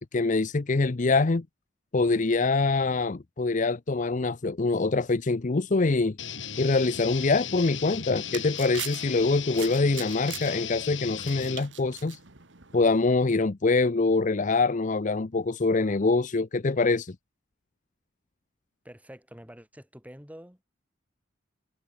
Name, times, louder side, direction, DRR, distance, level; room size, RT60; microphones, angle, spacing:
voice 1, 0.1-1.5 1.9-6.2 6.6-12.2 12.7-17.2, left 3 dB, 40° left, 0.7 m, -24 dB
sound 1, 6.2-11.6, left 8 dB, 80° left, 5.4 m, -36 dB
sound 2, 7.8-13.0, right 11 dB, 75° right, 2.3 m, -43 dB
voice 2, 18.8-20.6, equal, 10° right, 7.7 m, -47 dB
head